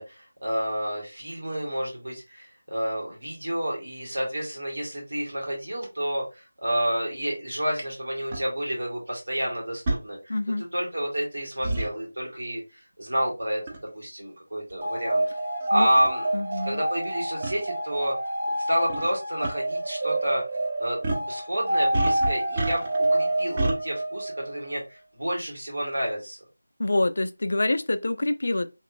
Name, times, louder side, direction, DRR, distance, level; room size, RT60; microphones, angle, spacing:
voice 1, 0.0-15.3 15.7-16.3 16.5-18.1 18.6-20.4 20.8-26.4, equal, 70° right, 1.9 m, -30 dB
sound 1, 8.3-8.4 9.9-10.0 11.6-11.9 13.7-13.9 14.7-14.8 15.6-15.7 16.0-16.1 17.4-17.6 18.9-19.1 19.4-19.5 21.0-21.3 21.9-23.1 23.6-23.8, right 2 dB, 15° right, 0.4 m, -28 dB
voice 2, 10.3-10.7 15.7-15.9 16.3-16.8 26.8-28.7, left 2 dB, 55° left, 0.3 m, -26 dB
sound 2, 14.8-24.5, right 1 dB, 45° right, 1.8 m, -28 dB
3.0 x 3.0 x 2.5 m
figure-of-eight pair, 175°, 0 cm